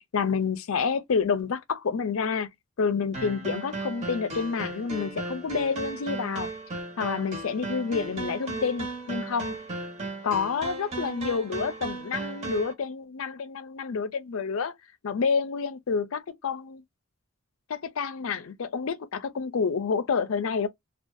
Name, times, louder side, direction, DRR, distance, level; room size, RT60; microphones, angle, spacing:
voice 1, 0.1-2.5 2.8-6.5 7.0-9.5 10.2-14.7 15.0-16.8 17.7-20.7, left 5 dB, 75° left, 0.5 m, -28 dB
sound 1, 3.1-12.7, right 3 dB, 35° right, 0.9 m, -36 dB
2.6 x 2.3 x 2.3 m
head